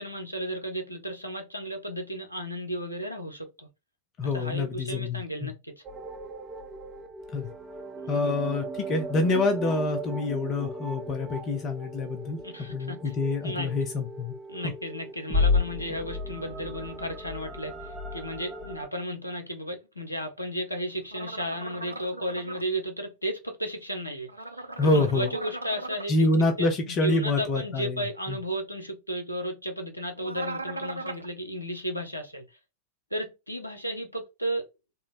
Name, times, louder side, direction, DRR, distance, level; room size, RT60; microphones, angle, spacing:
voice 1, 0.0-3.7 4.3-5.8 8.0-8.4 12.4-13.2 13.4-13.7 14.5-24.3 24.5-26.1 26.6-32.4 33.1-34.6, equal, 85° left, 0.7 m, -34 dB
voice 2, 4.2-5.5 7.3-7.5 8.1-12.4 12.7-14.3 24.8-25.3 26.1-28.4, left 2 dB, 35° left, 0.5 m, -26 dB
sound 1, 5.8-18.9, left 2 dB, 20° right, 0.5 m, -34 dB
sound 2, 21.1-22.6 24.3-26.1 30.2-31.3, right 2 dB, 85° right, 0.4 m, -38 dB
3.7 x 2.0 x 2.5 m
figure-of-eight pair, 90°, 0 cm